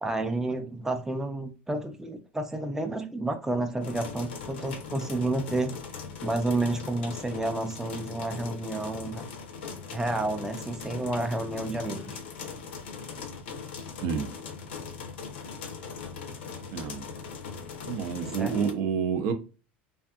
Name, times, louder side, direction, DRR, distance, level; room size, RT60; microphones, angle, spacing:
voice 1, 0.0-5.7 6.2-9.2 9.9-12.2 18.4-18.6, right 2 dB, 10° right, 0.4 m, -30 dB
sound 1, 3.8-18.7, left 5 dB, 80° left, 0.5 m, -40 dB
voice 2, 16.7-17.1 17.9-19.3, right 7 dB, 60° right, 0.5 m, -29 dB
2.6 x 2.4 x 2.3 m
hypercardioid pair, 90°, 6 cm